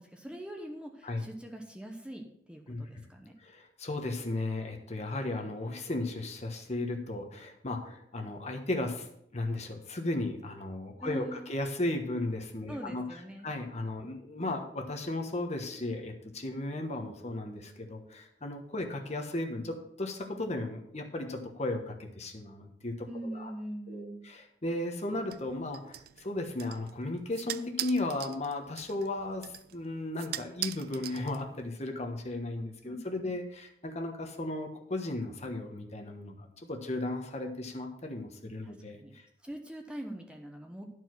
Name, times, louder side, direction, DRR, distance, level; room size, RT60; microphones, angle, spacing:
voice 1, 0.0-3.3 11.0-11.5 12.7-13.5 23.1-24.3 32.8-33.0 38.6-38.7 39.0-39.1 39.4-40.9, right 1 dB, 5° right, 2 dB, 0.9 m, -42 dB
voice 2, 2.7-3.0 3.4-9.1 9.3-23.5 23.9-39.3, left 2 dB, 40° left, 3 dB, 1.2 m, -35 dB
sound 1, 25.3-31.8, right 13 dB, 55° right, 0.4 m, -42 dB
11.5 x 4.7 x 6.1 m, 0.75 s
head